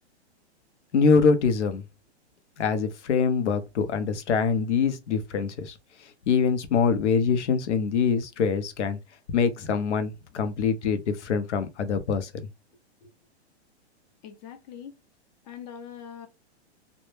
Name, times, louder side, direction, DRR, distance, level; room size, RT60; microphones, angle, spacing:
voice 1, 0.9-1.8 2.6-5.7 6.3-9.0 9.3-12.3, left 5 dB, 85° left, 0.7 m, -24 dB
voice 2, 14.2-15.0 15.4-16.3, left 8 dB, 40° left, 0.6 m, -42 dB
2.1 x 2.1 x 3.0 m
hypercardioid pair, 140°, 34 cm